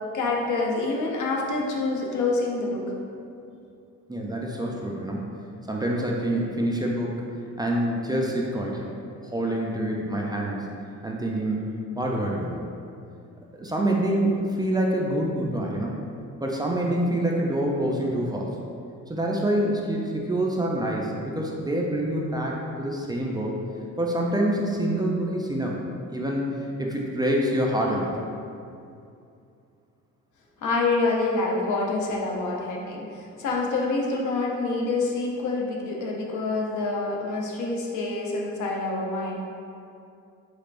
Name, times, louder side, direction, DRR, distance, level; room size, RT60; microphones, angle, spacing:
voice 1, 0.1-2.8 30.6-39.4, left 3 dB, 75° left, -1 dB, 0.7 m, -27 dB
voice 2, 4.1-5.3 5.7-7.2 7.6-8.9 9.2-10.6 11.0-11.7 12.0-12.7 13.5-16.0 16.4-18.5 19.1-23.6 24.0-25.8 26.1-26.5 26.8-28.1, right 1 dB, 15° right, -2 dB, 0.4 m, -26 dB
4.2 x 3.3 x 2.5 m, 2.5 s
cardioid pair, 90°, 30 cm